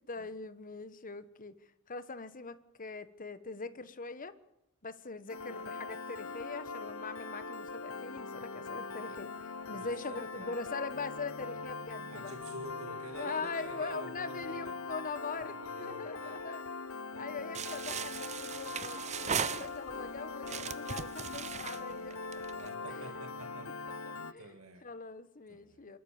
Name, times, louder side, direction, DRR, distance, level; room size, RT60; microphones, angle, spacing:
voice 1, 0.1-1.5 1.9-4.3 4.8-12.3 13.1-15.5 15.8-16.6 17.2-22.2 22.9-23.2 23.9-24.0 24.3-24.5 24.8-26.0, left 4 dB, 40° left, 12 dB, 1.3 m, -42 dB
Piano, 5.3-24.3, left 3 dB, 75° left, 1.1 m, -42 dB
voice 2, 9.7-10.5 11.4-11.6 12.1-14.7 15.5-16.5 17.1-17.6 20.0-20.1 21.7-22.1 22.5-23.7 24.4-24.8 25.5-26.0, right 2 dB, 85° right, 4 dB, 2.0 m, -49 dB
sound 1, 17.5-20.0 20.4-22.7, right 7 dB, 35° right, 0.7 m, -38 dB
26.5 x 13.5 x 8.8 m, 0.86 s
head